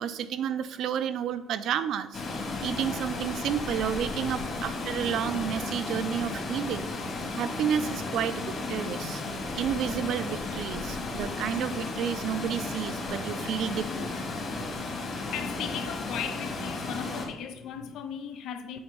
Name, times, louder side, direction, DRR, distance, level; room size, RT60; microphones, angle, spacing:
voice 1, 0.0-6.9 7.4-9.2 9.5-14.1, right 8 dB, 65° right, 0.5 m, -31 dB
Water, 2.1-17.3, left 3 dB, 45° left, 2.3 m, -34 dB
voice 2, 4.1-4.5 15.3-18.8, left 8 dB, 70° left, 0.7 m, -37 dB
7.9 x 4.4 x 5.3 m
cardioid pair, 135°, 0 cm